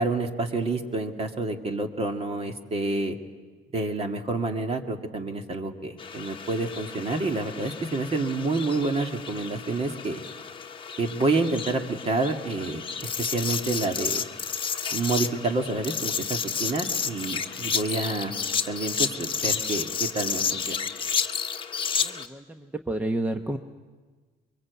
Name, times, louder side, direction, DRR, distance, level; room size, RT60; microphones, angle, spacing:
voice 1, 0.0-3.2 3.7-10.2 11.0-14.2 14.9-18.3 18.7-20.8, right 3 dB, 35° right, 4 dB, 2.2 m, -28 dB
sound 1, 6.0-22.3, left 6 dB, 30° left, 1.2 m, -31 dB
voice 2, 22.0-23.6, right 1 dB, 10° right, 6 dB, 0.9 m, -30 dB
23.5 x 23.5 x 8.3 m, 1.4 s
cardioid pair, 110°, 17 cm